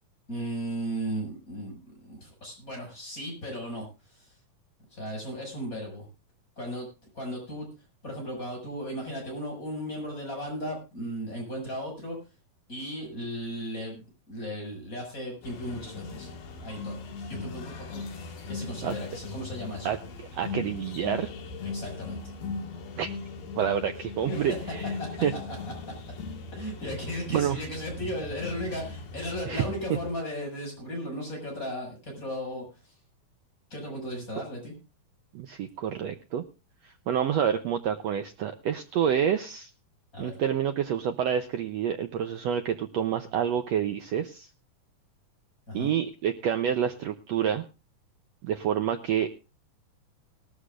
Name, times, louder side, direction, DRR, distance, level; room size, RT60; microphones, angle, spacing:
voice 1, 0.3-4.3 4.9-6.0 6.6-6.9 7.1-7.7 8.0-12.2 12.7-16.3 16.6-17.0 17.3-19.9 21.6-22.3 24.3-24.4 25.0-25.6 25.8-25.9 26.5-32.6 33.7-34.7 40.1-40.4 45.7-45.9, equal, 20° left, 0 dB, 6.7 m, -36 dB
sound 1, 15.4-30.2, left 4 dB, 90° left, 3.9 m, -39 dB
voice 2, 20.3-21.3 23.0-23.1 23.6-24.9 25.2-25.3 27.3-27.6 29.5-29.7 35.3-36.4 36.8-39.7 40.2-44.5 45.7-47.6 48.4-49.3, right 9 dB, 85° right, 7 dB, 1.4 m, -28 dB
19.5 x 13.0 x 2.5 m, 0.30 s
omnidirectional pair, 4.1 m